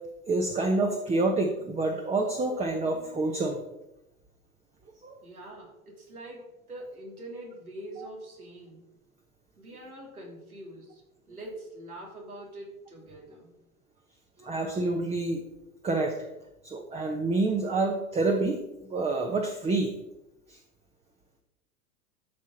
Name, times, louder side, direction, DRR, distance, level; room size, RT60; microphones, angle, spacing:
voice 1, 0.3-3.6 5.0-5.2 8.0-8.1 14.4-15.4 15.8-16.3 16.6-18.6 18.9-19.9 20.5-20.6, right 2 dB, 15° right, 3 dB, 1.1 m, -27 dB
voice 2, 5.2-8.8 9.6-11.0 11.3-13.5, right 1 dB, 90° right, -2 dB, 3.5 m, -44 dB
13.0 x 6.2 x 4.2 m, 0.93 s
figure-of-eight pair, 95°, 43 cm